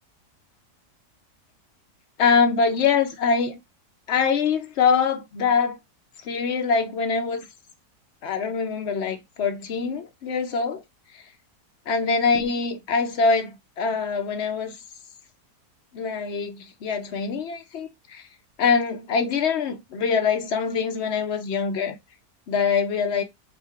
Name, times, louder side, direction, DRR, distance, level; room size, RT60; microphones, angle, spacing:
voice 1, 2.2-3.6 4.1-5.8 6.2-7.5 8.2-10.8 11.1-11.2 11.9-14.8 15.9-18.2 18.6-22.0 22.5-23.2, left 5 dB, 55° left, 0.8 m, -24 dB
3.7 x 2.4 x 4.3 m
omnidirectional pair, 1.7 m